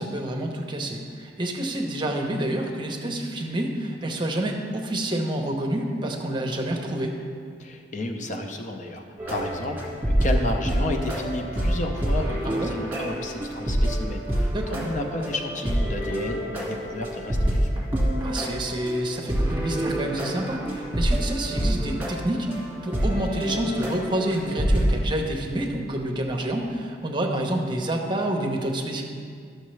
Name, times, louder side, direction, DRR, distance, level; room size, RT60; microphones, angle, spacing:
voice 1, 0.0-7.2 12.4-12.8 14.5-14.9 18.2-29.0, right 1 dB, 25° right, 1 dB, 0.7 m, -28 dB
voice 2, 7.6-17.7, left 1 dB, 45° left, 4 dB, 0.6 m, -32 dB
sound 1, 9.2-25.0, equal, 10° right, 1.8 m, -27 dB
11.5 x 6.5 x 3.2 m, 2.1 s
head